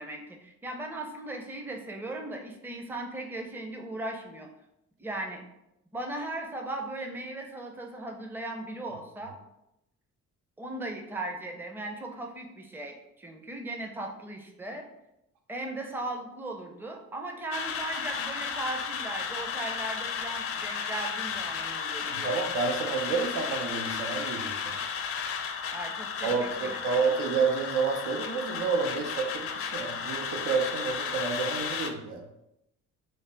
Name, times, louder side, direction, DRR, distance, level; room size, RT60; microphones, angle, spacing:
voice 1, 0.0-4.5 5.0-5.4 5.9-9.4 10.6-14.9 15.5-22.4 25.7-27.0, right 2 dB, 5° right, 2 dB, 0.5 m, -37 dB
sound 1, 17.5-31.9, left 6 dB, 50° left, 0.4 m, -34 dB
voice 2, 22.1-24.7 26.2-32.3, right 5 dB, 85° right, 3 dB, 0.6 m, -29 dB
3.2 x 2.1 x 3.8 m, 0.86 s
cardioid pair, 90°, 30 cm